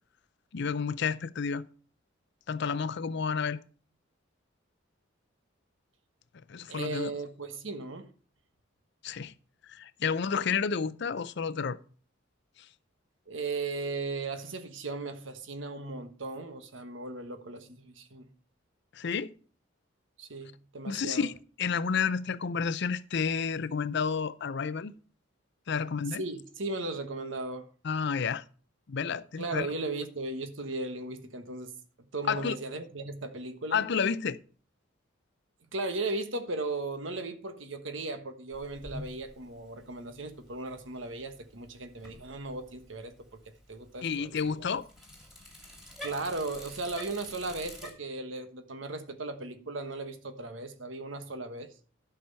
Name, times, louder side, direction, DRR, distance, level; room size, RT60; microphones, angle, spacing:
voice 1, 0.5-1.7 2.5-3.6 6.5-7.1 9.0-9.3 9.6-11.8 12.6-12.7 18.9-19.3 20.9-24.9 25.7-26.2 27.8-28.4 28.9-29.7 32.3-32.6 33.7-34.4 44.0-44.9, left 6 dB, 60° left, 0.5 m, -30 dB
voice 2, 6.7-8.1 13.3-18.3 20.2-21.3 26.2-27.7 29.4-31.7 32.1-33.8 35.7-43.1 43.7-44.8 46.0-51.7, right 3 dB, 75° right, 1.3 m, -37 dB
Bicycle, 38.5-47.9, left 1 dB, ahead, 2.7 m, -49 dB
11.5 x 6.0 x 5.5 m
head